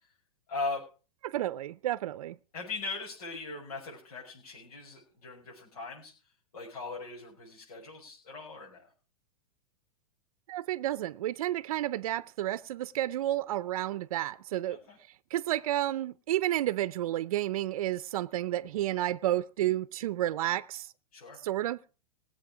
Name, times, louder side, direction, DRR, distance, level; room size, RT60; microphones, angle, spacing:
voice 1, 0.5-0.8 2.5-6.1 6.5-8.9 14.7-15.0 21.1-21.4, left 3 dB, 90° left, 5.8 m, -39 dB
voice 2, 1.2-2.3 10.5-14.8 15.3-20.9 21.4-21.8, right 14 dB, 70° right, 0.6 m, -31 dB
19.5 x 7.7 x 4.9 m
hypercardioid pair, 140°, 19 cm